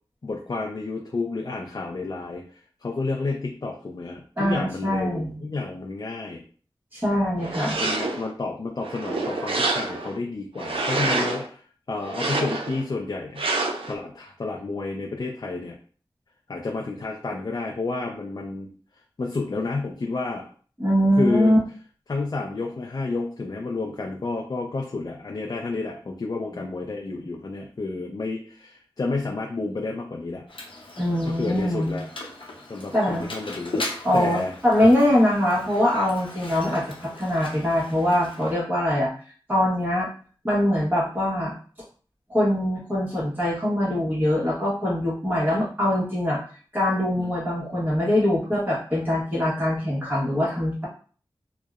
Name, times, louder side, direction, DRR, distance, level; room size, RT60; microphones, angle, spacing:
voice 1, 0.2-2.4 2.8-6.4 7.8-11.6 11.9-13.5 13.9-15.8 16.5-18.7 19.2-20.4 21.2-21.5 22.1-30.4 31.3-32.1 32.7-33.7 34.1-34.5 44.4-44.5 47.2-47.3, left 3 dB, 45° left, 0 dB, 0.4 m, -30 dB
voice 2, 4.4-5.4 6.9-7.8 20.8-21.6 26.5-26.6 31.0-31.9 32.9-33.3 34.0-39.1 39.5-40.1 40.4-41.5 42.3-46.4 46.7-50.9, left 1 dB, 20° right, -7 dB, 1.0 m, -23 dB
sound 1, 7.4-8.3 8.8-10.2 10.6-11.5 12.0-12.8 13.4-13.9, right 3 dB, 80° right, 0.4 m, -27 dB
Mechanisms, 30.5-38.5, left 2 dB, 70° left, 0.7 m, -38 dB
2.6 x 2.0 x 2.3 m, 0.42 s
wide cardioid pair, 55°, 9 cm